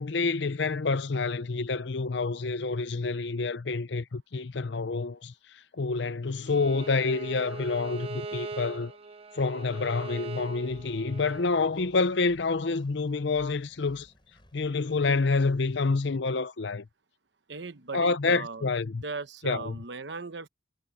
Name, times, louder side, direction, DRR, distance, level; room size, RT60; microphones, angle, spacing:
voice 1, 0.0-5.3 5.7-8.9 9.3-14.1 14.5-16.9 17.9-19.0 19.4-19.8, left 4 dB, 70° left, 0.7 m, -28 dB
Bowed string instrument, 6.5-11.5, right 3 dB, 30° right, 0.8 m, -40 dB
Engine, 10.6-15.9, equal, 25° left, 6.2 m, -59 dB
voice 2, 17.5-20.5, right 4 dB, 65° right, 1.1 m, -39 dB
head